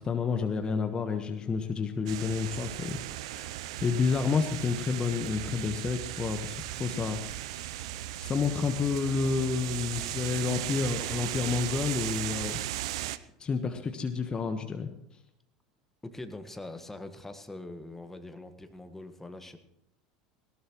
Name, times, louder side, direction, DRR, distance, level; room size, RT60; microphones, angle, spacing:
voice 1, 0.0-7.6 8.2-12.6 13.4-14.9, left 5 dB, 30° left, 6 dB, 1.4 m, -30 dB
sound 1, 2.1-13.2, right 14 dB, 65° right, 0.6 m, -36 dB
voice 2, 16.0-19.6, left 2 dB, 10° left, 8 dB, 1.7 m, -43 dB
19.0 x 17.5 x 3.1 m, 0.82 s
hypercardioid pair, 75°, 3 cm